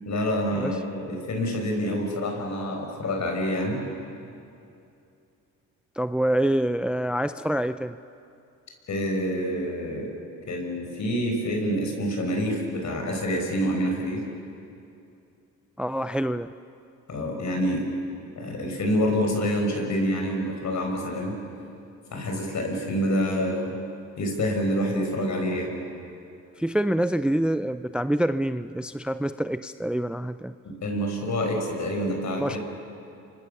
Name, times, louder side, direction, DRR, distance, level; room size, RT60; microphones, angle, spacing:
voice 1, 0.0-3.8 8.9-10.1 10.5-14.2 17.1-17.8 18.4-21.3 22.1-23.8 24.2-25.7 30.6-32.6, equal, 60° left, 2 dB, 6.6 m, -27 dB
voice 2, 6.0-8.0 15.8-16.5 26.6-30.5 32.4-32.6, right 1 dB, 5° right, 12 dB, 0.5 m, -26 dB
29.5 x 25.0 x 7.1 m, 2.6 s
cardioid pair, 80°, 33 cm